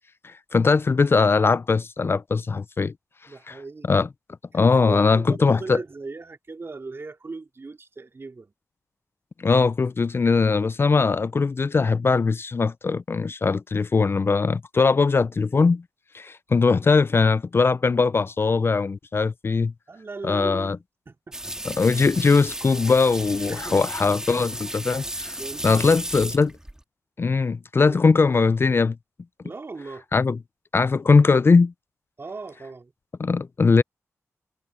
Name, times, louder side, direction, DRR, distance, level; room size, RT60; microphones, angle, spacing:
voice 1, 0.2-2.9 3.5-3.6 3.9-4.1 4.5-5.8 9.4-15.8 16.1-19.7 20.2-20.8 21.7-25.4 25.6-26.5 27.2-29.0 30.1-30.4 30.7-31.7 33.2-33.8, left 4 dB, 45° left, 0.4 m, -20 dB
voice 2, 3.3-3.9 4.5-8.5 19.9-21.4 21.7-21.9 23.5-24.2 25.3-25.9 27.9-28.0 29.4-30.0 32.2-32.9, right 3 dB, 45° right, 3.7 m, -38 dB
sound 1, 21.3-26.8, right 1 dB, 10° right, 1.9 m, -34 dB
cardioid pair, 55°, 6 cm